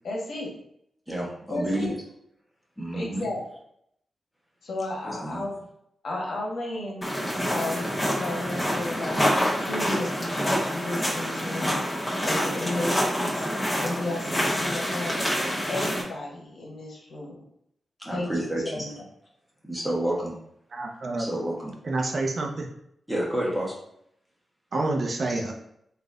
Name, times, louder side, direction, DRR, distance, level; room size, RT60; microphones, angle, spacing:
voice 1, 0.0-0.5 1.5-2.0 2.9-3.4 4.6-5.5 6.0-7.1 7.5-9.2 9.6-15.2 15.7-17.4 18.1-18.3 18.6-18.9, left 2 dB, 70° left, -2 dB, 1.2 m, -33 dB
voice 2, 1.1-2.0 2.8-3.3 5.0-5.5 18.0-18.9 19.6-20.4 21.1-21.7 23.1-23.8, right 1 dB, ahead, -4 dB, 1.2 m, -29 dB
sound 1, 7.0-16.0, equal, 15° left, 1.2 m, -27 dB
voice 3, 20.7-21.3 21.8-22.7 24.7-25.5, right 2 dB, 50° right, 2 dB, 0.7 m, -28 dB
4.0 x 2.6 x 3.7 m, 0.73 s
wide cardioid pair, 115°, 0 cm